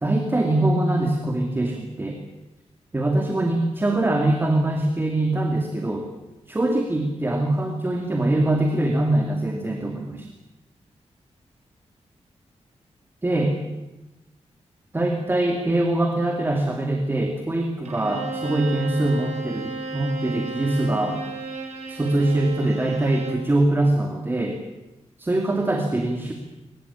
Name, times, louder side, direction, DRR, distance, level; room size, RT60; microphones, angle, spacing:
voice 1, 0.0-2.2 2.9-6.0 6.5-10.3 13.2-13.6 14.9-21.2 21.9-24.6 25.2-26.3, right 1 dB, 20° right, 3 dB, 2.5 m, -23 dB
Bowed string instrument, 17.8-23.5, right 3 dB, 80° right, 6.3 m, -33 dB
22.5 x 20.5 x 8.5 m, 1.0 s
wide cardioid pair, 165°, 12 cm